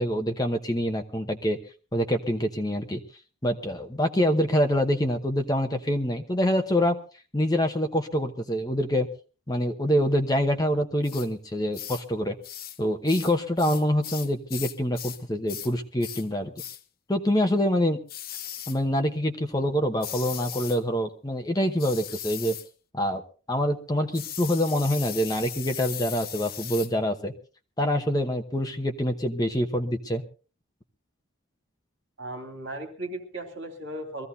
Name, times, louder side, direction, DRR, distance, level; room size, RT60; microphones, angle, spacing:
voice 1, 0.0-1.6 1.9-3.0 3.4-7.0 7.3-9.1 9.5-12.3 12.8-16.5 17.1-18.0 18.7-22.6 22.9-23.2 23.5-27.3 27.8-30.2, equal, 20° left, 6 dB, 0.9 m, -25 dB
sound 1, 11.0-11.3 11.7-12.1 12.4-12.8 13.1-15.2 15.5-15.7 16.0-16.3 16.6-16.8 18.1-18.8 20.0-20.8 21.8-22.7 24.1-26.9, left 11 dB, 45° left, 0.8 m, -38 dB
voice 2, 32.2-34.3, right 1 dB, 60° right, 3 dB, 2.8 m, -36 dB
23.5 x 15.5 x 2.7 m, 0.36 s
head